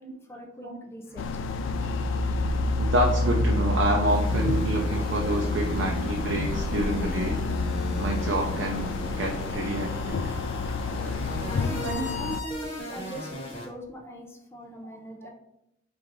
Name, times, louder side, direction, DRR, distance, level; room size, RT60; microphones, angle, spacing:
voice 1, 0.3-1.2 10.3-10.4 11.4-15.3, right 1 dB, 15° left, 0 dB, 0.5 m, -41 dB
sound 1, 1.2-12.4, left 4 dB, 80° left, 0.3 m, -31 dB
sound 2, 1.2-8.9, left 1 dB, 65° left, 0.7 m, -29 dB
voice 2, 2.8-7.4 8.0-10.3 11.8-12.1, right 1 dB, 75° right, 0 dB, 0.5 m, -28 dB
sound 3, 4.1-13.7, left 1 dB, 30° left, 1.3 m, -37 dB
4.8 x 2.5 x 3.6 m, 0.81 s
head